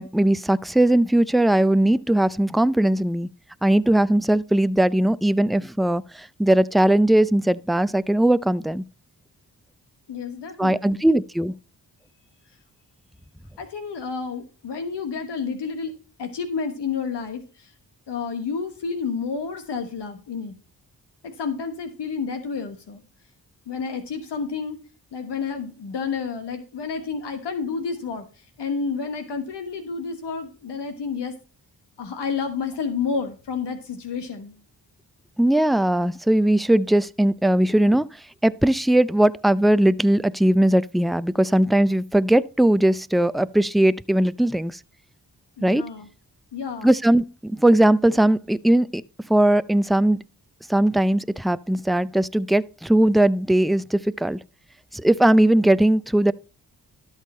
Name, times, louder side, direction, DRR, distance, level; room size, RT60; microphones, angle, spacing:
voice 1, 0.0-3.3 3.6-8.8 10.6-11.5 35.4-38.1 38.4-44.8 45.6-45.9 46.8-49.0 49.3-50.2 50.7-54.4 54.9-56.3, right 1 dB, ahead, 0.4 m, -19 dB
voice 2, 10.1-11.0 13.6-17.7 18.1-20.5 21.2-23.0 23.7-24.8 25.1-28.2 28.6-31.4 32.0-34.5 45.6-46.1 46.5-46.9, left 5 dB, 80° left, 1.3 m, -30 dB
12.0 x 6.5 x 4.2 m
supercardioid pair, 40°, 41 cm